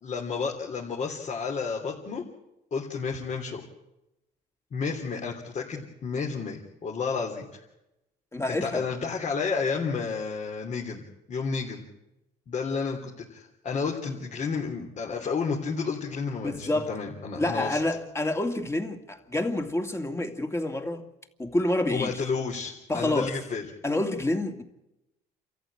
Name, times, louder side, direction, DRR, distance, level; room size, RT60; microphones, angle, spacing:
voice 1, 0.0-2.2 2.7-3.6 4.7-7.6 8.5-11.8 12.5-17.8 21.9-23.6, left 5 dB, 45° left, 3.4 m, -31 dB
voice 2, 8.3-8.9 16.4-16.9 17.4-21.0 21.4-22.1 22.9-23.3 23.8-24.6, left 1 dB, 15° left, 2.4 m, -28 dB
28.5 x 14.5 x 8.9 m
cardioid pair, 110°, 17 cm